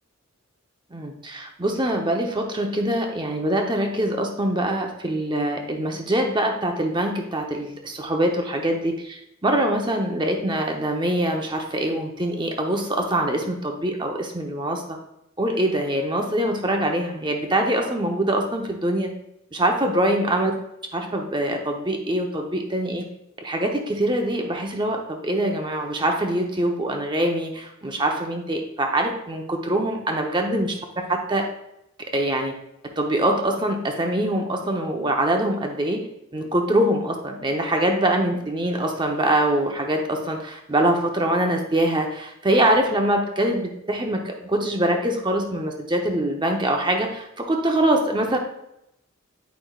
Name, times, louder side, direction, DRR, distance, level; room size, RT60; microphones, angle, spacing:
voice 1, 0.9-15.0 15.4-19.1 19.5-20.5 20.9-23.1 23.4-30.7 31.1-31.5 32.1-32.5 33.0-36.0 36.3-48.4, right 1 dB, 20° right, 2 dB, 0.7 m, -24 dB
9.2 x 5.1 x 2.4 m, 0.82 s
head